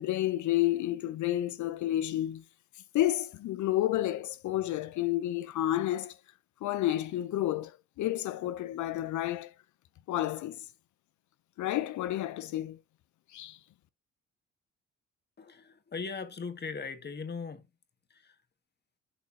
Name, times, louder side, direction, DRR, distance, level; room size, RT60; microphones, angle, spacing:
voice 1, 0.0-2.4 2.9-6.2 6.6-9.5 10.1-10.7 11.6-12.8 13.3-13.6, left 14 dB, 75° left, 0.6 m, -30 dB
voice 2, 15.4-17.6 18.1-18.3, left 5 dB, 35° left, 1.7 m, -39 dB
11.5 x 4.1 x 2.7 m
cardioid pair, 90°, 30 cm